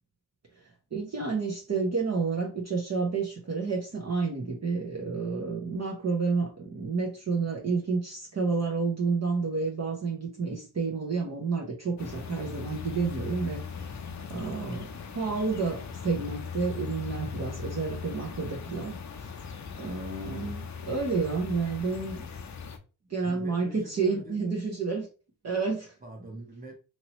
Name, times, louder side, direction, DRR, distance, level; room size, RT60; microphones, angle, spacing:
voice 1, 0.9-14.0 14.3-14.9 15.1-19.0 19.8-22.2 23.1-25.1 25.4-25.9, right 4 dB, 40° right, 0.9 m, -30 dB
sound 1, 12.0-22.8, left 6 dB, 45° left, 0.6 m, -39 dB
voice 2, 23.0-24.4 26.0-26.8, right 2 dB, 20° right, 1.1 m, -45 dB
3.0 x 2.7 x 2.9 m
cardioid pair, 80°, 42 cm